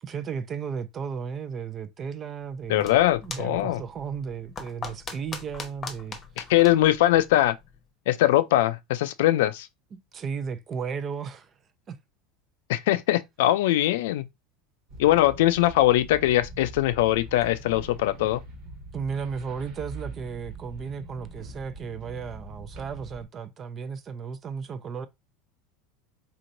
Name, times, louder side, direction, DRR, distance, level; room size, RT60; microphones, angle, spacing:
voice 1, 0.0-6.2 9.9-11.5 11.9-12.0 18.9-25.1, right 6 dB, 35° right, 0.6 m, -34 dB
sound 1, 2.4-7.8, left 5 dB, 30° left, 0.9 m, -41 dB
voice 2, 2.7-3.8 6.4-7.6 8.1-9.7 12.7-14.2 15.0-18.4, left 14 dB, 75° left, 0.4 m, -21 dB
sound 2, 14.9-23.3, right 2 dB, 60° right, 1.5 m, -43 dB
4.2 x 3.0 x 2.6 m
hypercardioid pair, 100°, 0 cm